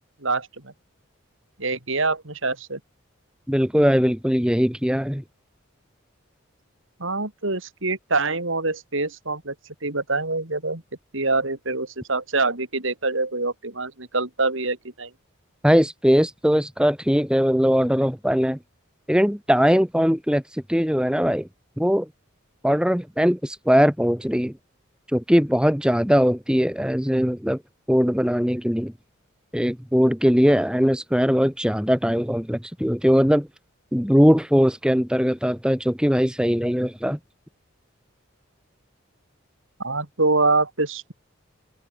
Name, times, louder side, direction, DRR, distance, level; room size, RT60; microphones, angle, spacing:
voice 1, 0.2-0.7 1.6-2.8 7.0-9.5 9.8-10.8 11.1-15.1 39.8-41.1, right 3 dB, 70° right, 3.7 m, -25 dB
voice 2, 3.5-5.2 15.6-18.6 19.1-21.5 21.8-22.1 22.6-24.6 25.1-27.6 27.9-28.9 29.5-33.5 33.9-37.2, equal, 5° right, 2.5 m, -20 dB
open air
head